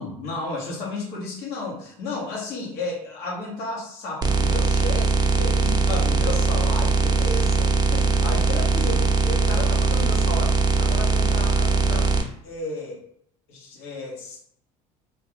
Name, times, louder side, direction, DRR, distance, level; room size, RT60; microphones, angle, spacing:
voice 1, 0.0-12.1 12.4-13.0 13.5-14.4, left 2 dB, 70° left, -3 dB, 1.4 m, -33 dB
sound 1, 4.2-12.2, right 4 dB, 20° right, 0.7 m, -20 dB
2.9 x 2.5 x 3.1 m, 0.66 s
hypercardioid pair, 75°, 18 cm